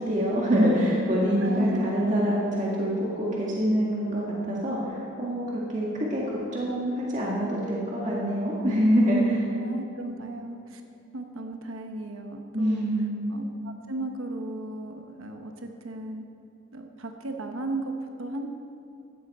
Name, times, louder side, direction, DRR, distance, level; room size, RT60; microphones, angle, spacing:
voice 1, 0.0-9.5 12.5-13.2, equal, 35° right, -5 dB, 1.9 m, -25 dB
voice 2, 1.4-1.9 9.6-10.8 11.1-12.9 13.3-16.2 16.7-18.5, right 2 dB, 90° right, 4 dB, 1.0 m, -36 dB
16.0 x 13.0 x 4.3 m, 2.6 s
head